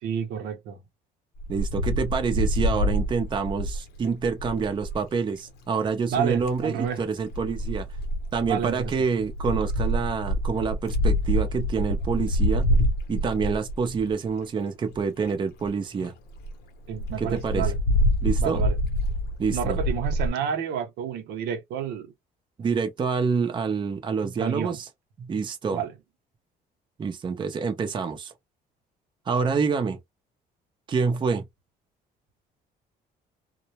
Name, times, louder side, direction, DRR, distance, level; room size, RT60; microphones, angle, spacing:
voice 1, 0.0-0.8 6.1-7.0 8.5-8.9 16.9-17.8 18.4-18.8 19.5-22.1 24.4-24.8 25.7-25.9, right 8 dB, 80° right, 0.7 m, -30 dB
Wind, 1.4-5.0 6.1-6.6 7.3-14.3 14.9-15.0 15.2-15.3 15.7-15.8 16.0-16.1 16.4-16.5 17.0-20.3, equal, 75° left, 0.7 m, -26 dB
voice 2, 1.5-7.9 8.3-12.7 13.1-16.1 17.2-17.7 18.2-18.7 19.4-19.8 22.6-24.9 25.2-25.8 27.0-28.3 29.3-30.0 30.9-31.5, right 5 dB, 30° right, 0.5 m, -27 dB
2.1 x 2.1 x 2.8 m
cardioid pair, 110°, 17 cm